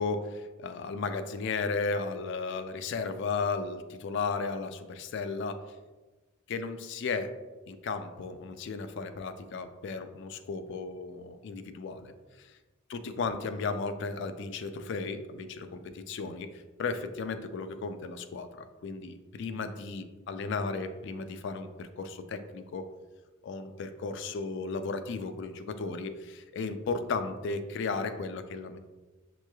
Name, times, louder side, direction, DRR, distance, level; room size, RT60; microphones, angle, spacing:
voice 1, 0.0-5.6 6.5-7.3 7.7-12.1 12.4-12.5 12.9-16.5 16.8-22.9 23.4-28.8, left 4 dB, 60° left, 9 dB, 0.3 m, -35 dB
6.5 x 3.1 x 2.3 m, 1.2 s
head